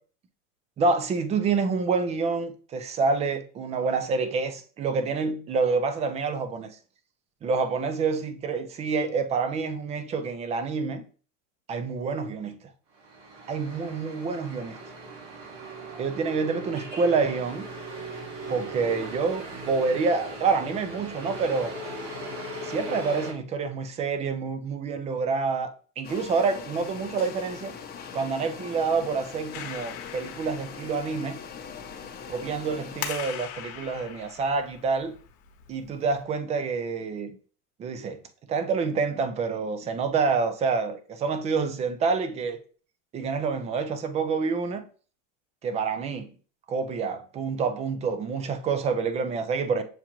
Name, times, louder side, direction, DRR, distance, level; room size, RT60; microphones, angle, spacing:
voice 1, 0.8-6.7 7.4-11.0 11.7-12.6 13.5-14.8 16.0-17.7 18.5-21.7 22.6-27.7 28.1-31.4 32.3-35.1 35.7-37.3 37.8-38.2 38.5-42.6 43.1-44.8 45.6-46.3 46.7-49.8, right 4 dB, 20° right, 0.3 m, -27 dB
sound 1, 13.0-23.3, right 1 dB, 60° right, 1.9 m, -38 dB
sound 2, 26.0-33.1, left 7 dB, 25° left, 0.8 m, -41 dB
Clapping, 29.5-36.2, left 9 dB, 60° left, 1.0 m, -41 dB
7.1 x 2.4 x 2.9 m
supercardioid pair, 125°, 39 cm